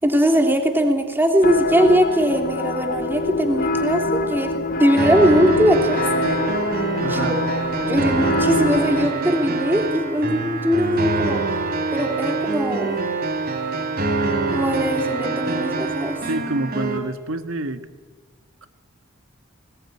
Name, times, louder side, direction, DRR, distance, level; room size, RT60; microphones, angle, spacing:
voice 1, 0.0-6.0 7.0-7.4 7.9-11.4 11.9-13.0 14.5-16.2, equal, 10° right, 4 dB, 2.9 m, -20 dB
sound 1, 1.4-9.1, left 2 dB, 45° left, 1.2 m, -24 dB
sound 2, 5.0-17.0, right 3 dB, 45° right, 3.5 m, -25 dB
voice 2, 7.0-7.4 16.3-17.8 18.6-18.7, right 2 dB, 75° right, 9 dB, 1.7 m, -27 dB
21.0 x 19.5 x 9.8 m, 1.4 s
head